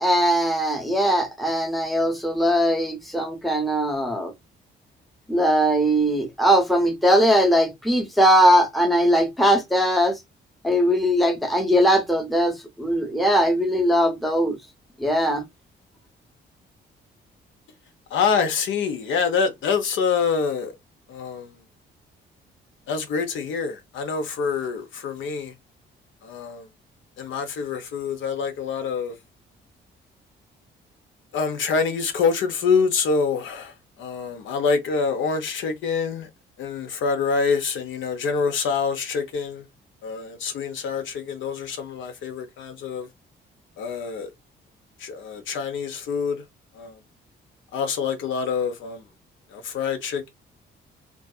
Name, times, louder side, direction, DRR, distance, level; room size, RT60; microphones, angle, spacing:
voice 1, 0.0-4.3 5.3-10.2 10.6-14.6 15.0-15.4, equal, ahead, 0.7 m, -20 dB
voice 2, 18.1-20.7 21.1-21.5 22.9-25.5 26.2-26.7 27.2-29.1 31.3-33.7 34.0-36.3 36.6-39.6 40.0-43.1 43.8-44.3 45.0-46.4 46.8-46.9 47.7-49.0 49.5-50.3, left 5 dB, 75° left, 0.7 m, -26 dB
2.6 x 2.3 x 2.3 m
cardioid pair, 90°, 20 cm